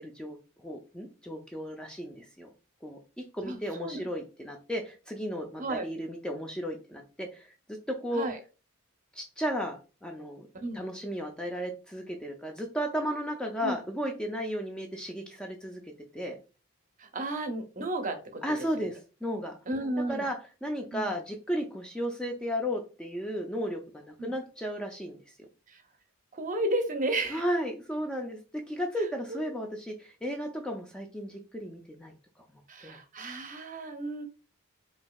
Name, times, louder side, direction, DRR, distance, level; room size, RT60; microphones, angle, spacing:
voice 1, 0.0-2.5 2.8-8.3 9.1-10.5 10.7-15.8 16.1-16.4 18.4-19.6 20.1-20.4 20.6-25.2 27.3-28.4 28.7-32.1 32.5-33.0, equal, 5° left, 2 dB, 0.4 m, -34 dB
voice 2, 3.4-4.0 5.6-5.9 8.1-8.4 10.5-10.8 13.6-13.7 17.0-18.4 18.8-18.9 19.7-20.3 20.9-21.1 24.2-24.3 25.7-25.8 26.3-27.4 29.3-29.5 32.7-34.2, right 1 dB, 40° right, 7 dB, 0.6 m, -33 dB
5.0 x 2.6 x 2.3 m, 0.33 s
head